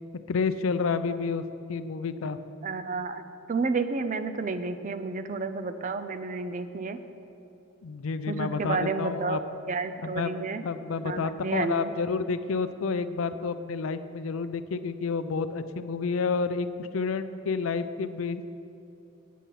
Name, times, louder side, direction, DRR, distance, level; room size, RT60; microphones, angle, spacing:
voice 1, 0.3-1.4 1.7-2.4 7.8-9.4 10.0-10.3 10.6-18.5, left 4 dB, 85° left, 11 dB, 0.5 m, -30 dB
voice 2, 2.6-3.2 3.5-7.0 8.3-9.4 9.7-10.6 11.0-11.9, right 4 dB, 40° right, 10 dB, 0.5 m, -31 dB
9.2 x 5.7 x 8.3 m, 2.8 s
head